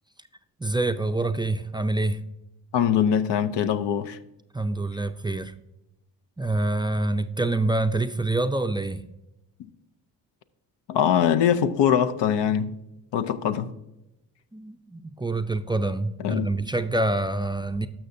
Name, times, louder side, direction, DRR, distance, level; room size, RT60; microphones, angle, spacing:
voice 1, 0.6-2.2 4.5-5.5 6.4-9.0 14.5-17.9, right 2 dB, 10° right, 0.4 m, -26 dB
voice 2, 2.7-4.2 10.9-12.7 13.1-13.7 16.2-16.5, left 9 dB, 80° left, 0.7 m, -22 dB
12.5 x 5.9 x 2.6 m
cardioid pair, 65°, 41 cm